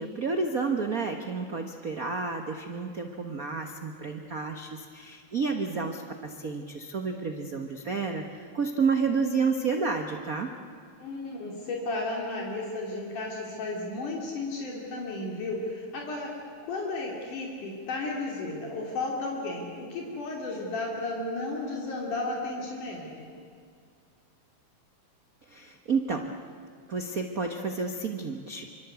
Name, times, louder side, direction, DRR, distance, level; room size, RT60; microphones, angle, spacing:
voice 1, 0.0-10.5 25.5-26.3 26.9-28.7, right 4 dB, 60° right, 4 dB, 0.9 m, -30 dB
voice 2, 11.0-16.3 16.6-23.3, left 2 dB, 80° left, -2 dB, 4.5 m, -33 dB
26.0 x 25.5 x 8.2 m, 2.2 s
omnidirectional pair, 3.6 m